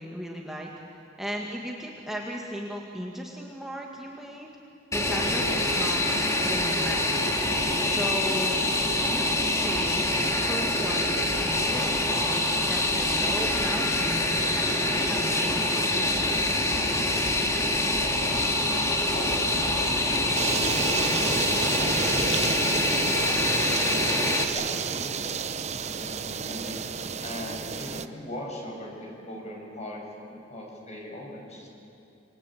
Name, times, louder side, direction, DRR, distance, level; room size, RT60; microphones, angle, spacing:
voice 1, 0.0-4.5 4.9-7.2 7.8-8.6 9.1-12.4 12.7-16.2, equal, ahead, -1 dB, 1.8 m, -36 dB
Fixed-wing aircraft airplane, 4.9-24.4, left 1 dB, 15° left, 2.1 m, -25 dB
voice 2, 19.0-22.7 23.3-25.2 25.8-26.8 27.2-31.7, left 1 dB, 40° left, 0 dB, 6.1 m, -40 dB
sound 1, 20.3-28.1, right 5 dB, 35° right, 0.8 m, -30 dB
27.5 x 24.5 x 8.5 m, 2.7 s
head